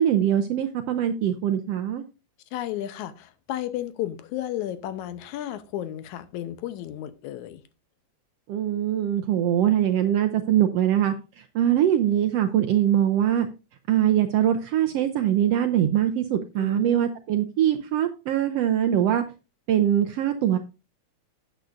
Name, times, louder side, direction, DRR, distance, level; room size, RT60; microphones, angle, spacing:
voice 1, 0.0-2.0 8.5-13.5 13.9-19.2 19.7-20.6, right 10 dB, 80° right, 7 dB, 1.4 m, -22 dB
voice 2, 2.5-7.6 16.6-17.1, left 12 dB, 80° left, 12 dB, 2.1 m, -33 dB
11.5 x 9.2 x 2.5 m, 0.29 s
omnidirectional pair, 3.5 m